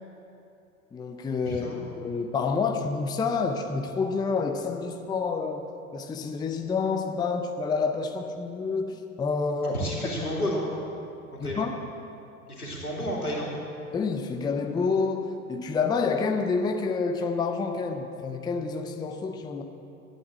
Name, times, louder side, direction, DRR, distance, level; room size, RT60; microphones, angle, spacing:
voice 1, 0.9-1.7 2.0-5.7 5.9-9.8 10.2-10.4 11.4-11.8 13.9-19.6, left 4 dB, 10° left, 5 dB, 0.6 m, -28 dB
voice 2, 1.4-1.8 9.7-10.6 11.4-11.6 12.5-13.6, equal, 85° left, -3 dB, 2.9 m, -31 dB
12.0 x 9.1 x 7.6 m, 2.8 s
figure-of-eight pair, 85°, 44 cm